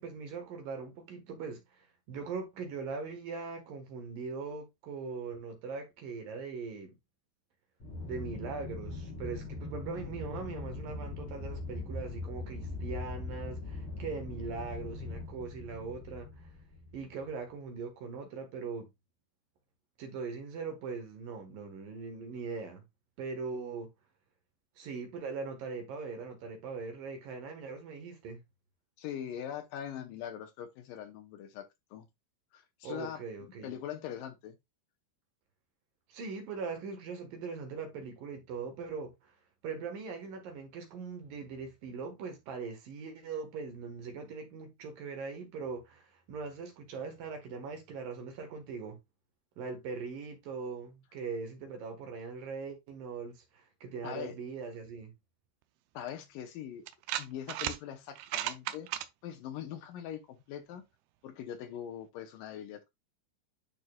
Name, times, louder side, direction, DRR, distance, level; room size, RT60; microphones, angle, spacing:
voice 1, 0.0-6.9 8.0-16.5 16.9-18.9 20.0-22.8 23.2-23.9 24.8-28.4 32.8-33.7 36.1-39.3 39.6-49.0 49.6-55.1, right 4 dB, 65° right, 2.8 m, -41 dB
Aircraft, 7.8-17.3, left 3 dB, 35° left, 2.8 m, -41 dB
voice 2, 29.0-32.1 32.5-34.6 54.0-54.4 55.9-56.9 57.2-58.9 59.2-60.8 61.2-62.9, left 10 dB, 75° left, 2.2 m, -42 dB
sound 1, 56.1-56.2 56.9-57.8 58.2-59.1, right 13 dB, 80° right, 2.6 m, -35 dB
11.0 x 4.4 x 2.3 m
omnidirectional pair, 4.6 m